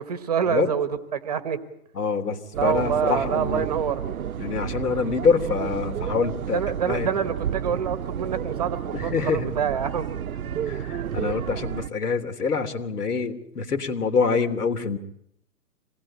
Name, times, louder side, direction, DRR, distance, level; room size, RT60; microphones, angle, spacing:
voice 1, 0.0-1.6 2.5-4.0 6.5-10.2, right 7 dB, 25° right, 1.2 m, -26 dB
voice 2, 2.0-3.7 4.4-6.6 6.9-7.1 8.9-9.5 10.7-15.0, left 5 dB, 75° left, 3.4 m, -25 dB
sound 1, 2.5-11.9, right 9 dB, 65° right, 0.9 m, -31 dB
26.0 x 19.5 x 8.8 m
hypercardioid pair, 175°, 47 cm